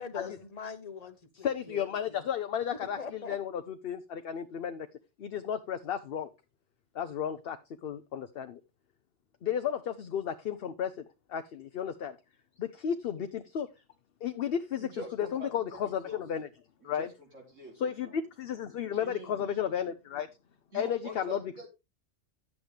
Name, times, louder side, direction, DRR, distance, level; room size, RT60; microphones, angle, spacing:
voice 1, 0.0-2.2 3.0-3.4, left 5 dB, 35° left, 1.0 m, -42 dB
voice 2, 1.3-4.9 5.2-6.3 6.9-7.6 7.8-8.6 9.4-10.9 11.3-12.2 12.6-13.7 14.2-14.9 15.2-16.5 16.8-17.1 17.8-20.3 20.7-21.4, left 8 dB, 55° left, 0.8 m, -33 dB
voice 3, 14.8-16.2 16.8-18.2 18.9-19.5 20.7-21.7, right 1 dB, 80° right, 3.6 m, -45 dB
11.0 x 8.1 x 3.3 m
omnidirectional pair, 1.3 m